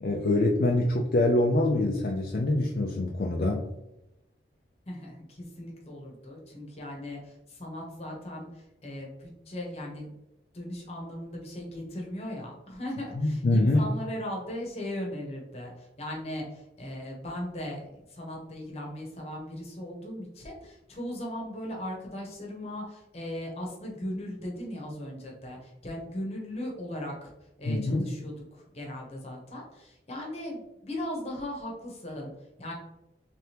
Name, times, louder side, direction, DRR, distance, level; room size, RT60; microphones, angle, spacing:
voice 1, 0.0-3.7 13.2-13.8 27.7-28.1, left 2 dB, 55° left, 0 dB, 0.4 m, -25 dB
voice 2, 4.9-10.1 10.5-27.3 27.6-32.3 32.6-32.7, left 1 dB, 35° left, -1 dB, 0.9 m, -38 dB
3.3 x 3.3 x 2.9 m, 0.92 s
head